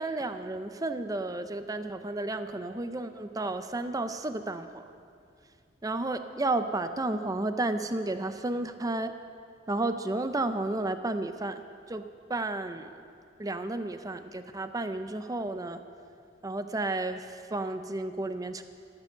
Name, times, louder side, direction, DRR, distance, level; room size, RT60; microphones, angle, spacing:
voice 1, 0.0-4.8 5.8-9.1 9.7-11.6 11.9-12.0 12.3-12.9 13.4-15.8 16.4-18.6, right 2 dB, 20° right, 9 dB, 0.6 m, -32 dB
13.5 x 9.8 x 6.8 m, 2.3 s
head